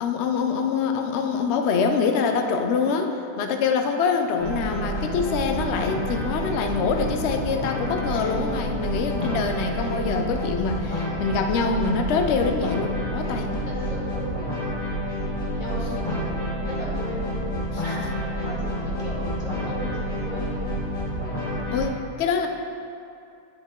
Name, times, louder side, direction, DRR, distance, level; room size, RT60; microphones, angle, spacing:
voice 1, 0.0-13.5 15.8-15.9 17.7-18.1 21.7-22.5, left 5 dB, 75° left, 5 dB, 0.6 m, -25 dB
sound 1, 4.4-21.9, equal, 55° left, 2.4 m, -29 dB
voice 2, 13.9-14.4 15.6-17.4 17.8-18.8 19.0-20.6, equal, 30° left, -8 dB, 1.9 m, -36 dB
9.7 x 5.2 x 3.7 m, 2.6 s
omnidirectional pair, 1.8 m